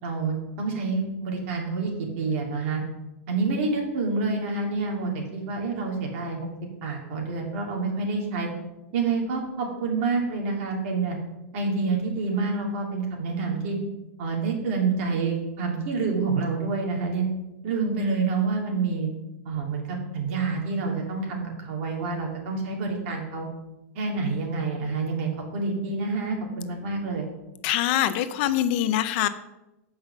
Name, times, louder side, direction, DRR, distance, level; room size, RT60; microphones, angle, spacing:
voice 1, 0.0-2.8 3.3-6.5 6.8-8.5 8.9-11.2 11.5-13.8 14.2-17.2 17.6-19.1 19.4-23.5 23.9-27.3, right 4 dB, 50° right, 0 dB, 2.8 m, -28 dB
voice 2, 27.6-29.3, left 12 dB, 45° left, 12 dB, 0.6 m, -24 dB
7.8 x 5.6 x 6.7 m, 0.96 s
supercardioid pair, 155°, 8 cm